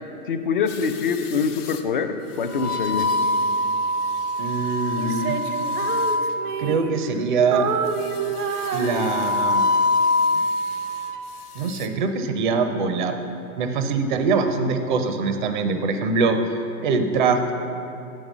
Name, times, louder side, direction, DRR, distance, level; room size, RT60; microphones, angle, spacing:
voice 1, 0.3-3.1, left 5 dB, 40° left, 8 dB, 0.4 m, -24 dB
sound 1, 0.7-1.8 2.5-6.8 8.0-11.2 11.6-11.9, left 2 dB, 75° left, 0.9 m, -25 dB
voice 2, 4.4-5.4 6.6-7.7 8.7-9.6 11.6-13.1 13.5-16.4 16.8-17.5, right 4 dB, 35° right, 7 dB, 0.5 m, -23 dB
Female singing, 5.0-7.2 7.5-9.6, right 6 dB, 90° right, 0.7 m, -29 dB
8.6 x 5.3 x 7.2 m, 2.7 s
hypercardioid pair, 155°, 45 cm